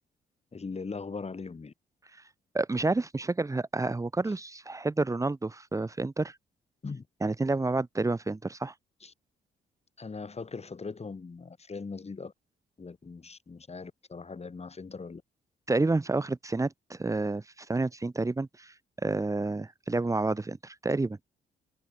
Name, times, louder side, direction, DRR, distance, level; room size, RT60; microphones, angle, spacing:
voice 1, 0.5-1.7 6.8-7.1 9.0-9.1 10.0-12.3 12.8-15.2, left 4 dB, 35° left, 4.7 m, -40 dB
voice 2, 2.5-6.4 7.2-8.7 15.7-18.7 19.0-21.2, right 3 dB, 15° right, 0.8 m, -29 dB
cardioid pair, 70°, 19 cm